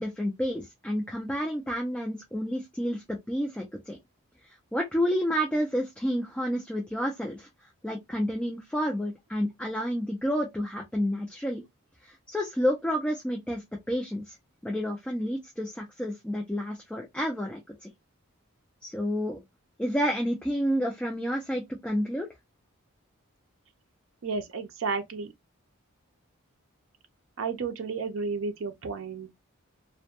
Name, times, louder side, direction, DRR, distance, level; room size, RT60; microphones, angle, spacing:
voice 1, 0.0-4.0 4.4-7.5 7.8-11.6 12.0-14.4 14.6-17.9 18.8-19.4 19.8-22.3, equal, 5° left, 0.3 m, -30 dB
voice 2, 24.2-25.3 27.4-29.3, right 4 dB, 65° right, 0.4 m, -32 dB
2.1 x 2.1 x 2.8 m
head